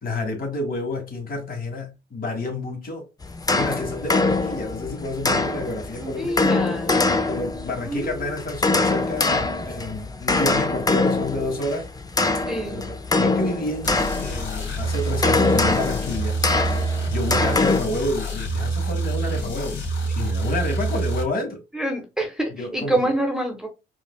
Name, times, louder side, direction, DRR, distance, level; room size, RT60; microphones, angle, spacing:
voice 1, 0.0-3.1 3.5-6.4 7.3-11.9 12.7-16.4 17.1-19.8 20.1-21.6 22.5-23.1, left 2 dB, 45° left, 1.7 m, -29 dB
sound 1, 3.2-17.8, left 3 dB, 20° left, 0.5 m, -24 dB
voice 2, 6.0-7.0 7.7-8.3 12.5-12.8 21.7-23.7, right 1 dB, 5° right, 1.1 m, -27 dB
sound 2, 13.8-21.2, right 2 dB, 70° left, 1.9 m, -27 dB
4.8 x 2.4 x 2.2 m
cardioid pair, 90°, 20 cm